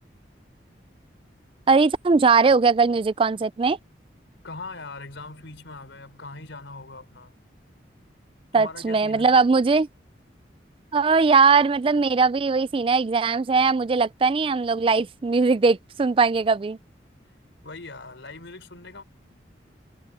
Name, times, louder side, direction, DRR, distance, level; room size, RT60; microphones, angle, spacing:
voice 1, 1.7-3.8 8.5-9.9 10.9-16.8, right 4 dB, 30° right, 0.3 m, -20 dB
voice 2, 4.4-7.3 8.5-9.4 17.6-19.0, left 3 dB, 90° left, 4.2 m, -40 dB
head